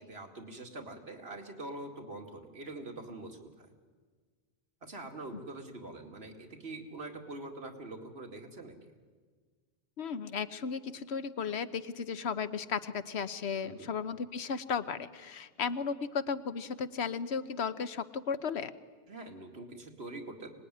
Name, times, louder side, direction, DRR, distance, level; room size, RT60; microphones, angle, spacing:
voice 1, 0.1-3.7 4.8-8.7 13.6-13.9 19.1-20.5, right 2 dB, 75° right, 4 dB, 2.6 m, -44 dB
voice 2, 10.0-18.7, left 6 dB, 90° left, 12 dB, 1.2 m, -35 dB
24.5 x 19.5 x 10.0 m, 1.5 s
omnidirectional pair, 1.1 m